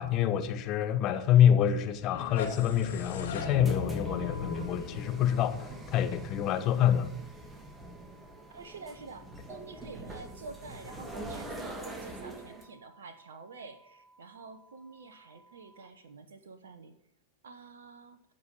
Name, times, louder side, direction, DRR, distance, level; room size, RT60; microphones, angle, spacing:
voice 1, 0.0-7.1, left 9 dB, 35° left, 1.2 m, -26 dB
sound 1, 2.0-6.9, left 4 dB, 60° left, 2.1 m, -38 dB
sound 2, 3.3-15.9, right 2 dB, 85° left, 2.9 m, -61 dB
sound 3, 3.4-12.7, right 2 dB, 15° right, 1.7 m, -45 dB
voice 2, 8.5-17.0 17.4-18.2, right 4 dB, 65° right, 0.9 m, -48 dB
14.5 x 5.4 x 6.3 m
figure-of-eight pair, 90°, 0 cm